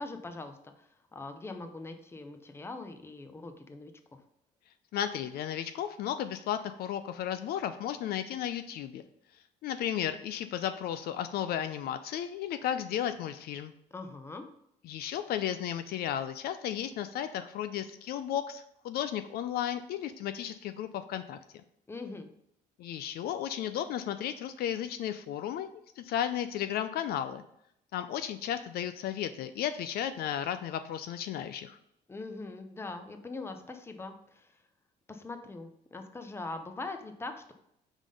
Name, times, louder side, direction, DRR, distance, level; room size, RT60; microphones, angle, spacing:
voice 1, 0.0-4.2 13.9-14.5 21.9-22.3 32.1-34.6 35.1-37.5, left 3 dB, 15° left, 6 dB, 0.7 m, -42 dB
voice 2, 4.9-9.0 9.6-13.7 14.8-21.4 22.8-27.4 27.9-31.8, left 10 dB, 65° left, 10 dB, 0.4 m, -34 dB
5.0 x 3.7 x 5.2 m, 0.74 s
cardioid pair, 110°, 17 cm